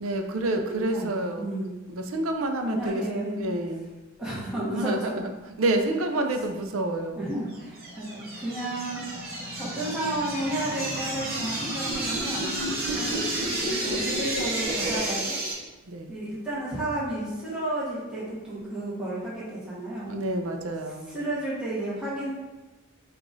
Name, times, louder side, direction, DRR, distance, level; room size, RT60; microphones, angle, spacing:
voice 1, 0.0-1.5 1.9-3.0 3.4-3.9 4.7-5.3 5.6-7.2 15.9-16.2 20.1-21.2, right 2 dB, 85° right, 5 dB, 0.5 m, -28 dB
voice 2, 0.7-1.1 1.4-1.8 2.6-3.5 4.2-5.2 7.1-9.0 9.6-12.6 12.9-13.2 13.8-15.4 16.1-20.1 21.1-22.3, right 1 dB, 5° right, -9 dB, 1.1 m, -32 dB
sound 1, 7.5-15.5, right 1 dB, 50° right, 1.0 m, -30 dB
4.7 x 2.5 x 3.9 m, 1.2 s
head